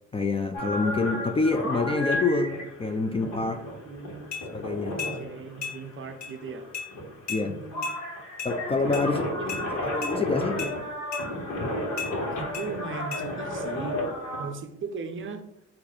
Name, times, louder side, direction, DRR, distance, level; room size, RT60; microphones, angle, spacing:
voice 1, 0.1-3.6 4.5-5.0 7.3-7.6 8.4-9.2 9.8-10.6, left 3 dB, 20° left, 5 dB, 0.3 m, -26 dB
sound 1, 0.5-14.5, left 1 dB, 75° left, 1.4 m, -33 dB
voice 2, 3.8-4.3 5.0-6.6 7.5-8.0 8.8-9.7 10.6-10.7 12.3-14.0 14.4-15.4, right 5 dB, 40° right, 7 dB, 0.5 m, -38 dB
sound 2, 4.3-4.4 5.0-5.2 5.6-5.8 6.2-6.3 6.7-6.9 7.3-7.4 7.8-8.0 8.4-8.5 8.9-9.1 9.5-9.6 10.0-10.1 10.6-10.7 11.1-11.3 12.0-12.1 12.5-12.7 13.1-13.2, left 6 dB, 60° left, 1.6 m, -34 dB
4.2 x 2.6 x 4.0 m, 0.84 s
cardioid pair, 90°, 30 cm